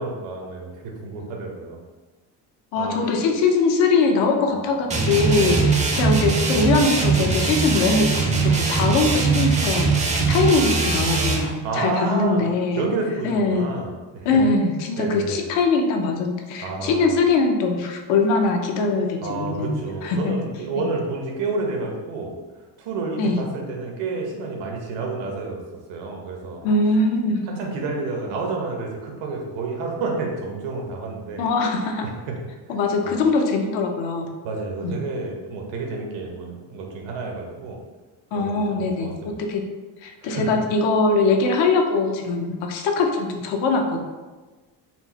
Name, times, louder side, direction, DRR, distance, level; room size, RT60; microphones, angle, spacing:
voice 1, 0.0-1.8 2.8-3.0 5.3-5.8 11.6-12.4 12.8-14.4 15.0-15.4 16.6-17.1 19.2-22.3 22.8-25.6 25.9-26.6 27.5-31.5 32.3-32.4 33.0-33.1 34.4-37.8 38.3-39.4 40.2-40.5, right 3 dB, 85° right, 0 dB, 1.0 m, -29 dB
voice 2, 2.7-12.8 13.2-13.7 14.2-20.4 20.7-20.8 23.2-23.4 26.6-27.4 31.4-32.1 32.7-34.3 34.8-35.0 38.3-39.7 40.0-44.0, left 3 dB, 85° left, 3 dB, 0.7 m, -22 dB
sound 1, 4.9-11.5, right 4 dB, 15° right, 0.4 m, -21 dB
4.4 x 2.1 x 4.2 m, 1.3 s
cardioid pair, 135°, 43 cm